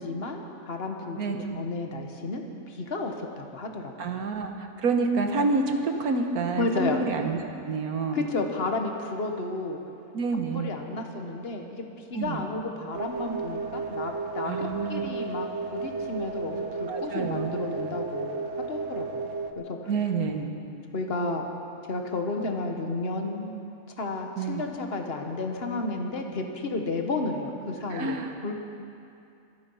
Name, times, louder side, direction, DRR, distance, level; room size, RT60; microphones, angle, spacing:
voice 1, 0.0-1.2 1.5-4.2 6.5-7.0 8.1-9.8 10.3-11.8 12.1-15.5 15.7-19.2 19.6-19.8 20.9-21.5 21.9-23.5 24.0-28.2 28.4-28.5, left 3 dB, 45° left, 3 dB, 1.5 m, -32 dB
voice 2, 1.2-1.6 4.0-7.4 7.6-8.2 10.1-10.7 12.1-12.4 14.5-15.1 16.9-17.6 19.9-20.5 24.4-24.6 27.9-28.3, right 4 dB, 90° right, 4 dB, 1.7 m, -28 dB
sound 1, 12.9-19.5, right 4 dB, 65° right, 1.1 m, -33 dB
25.0 x 8.8 x 5.6 m, 2.6 s
omnidirectional pair, 1.5 m